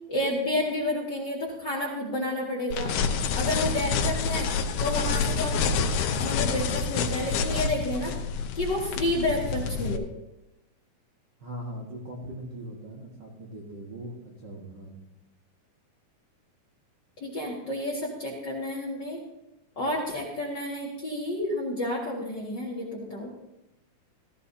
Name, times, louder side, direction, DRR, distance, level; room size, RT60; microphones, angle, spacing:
voice 1, 0.1-3.0 3.3-4.5 4.8-5.6 6.2-8.1 8.6-10.0 17.2-19.2 19.8-23.3, left 1 dB, 40° left, -3 dB, 1.9 m, -30 dB
sound 1, 2.7-10.0, left 5 dB, 85° left, 2.8 m, -28 dB
voice 2, 11.4-15.0, right 1 dB, 50° right, -3 dB, 1.3 m, -40 dB
16.5 x 14.5 x 2.8 m, 0.95 s
omnidirectional pair, 4.4 m